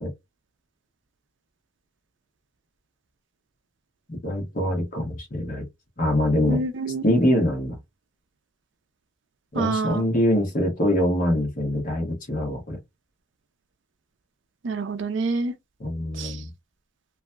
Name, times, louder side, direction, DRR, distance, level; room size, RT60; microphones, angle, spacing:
voice 1, 4.1-5.7 6.0-6.6 7.0-7.8 9.5-12.8 15.8-16.5, left 1 dB, 40° left, 1.3 m, -24 dB
voice 2, 6.5-7.0 9.5-10.0 14.6-15.5 16.1-16.4, right 3 dB, 60° right, 0.5 m, -27 dB
3.0 x 2.7 x 2.3 m
head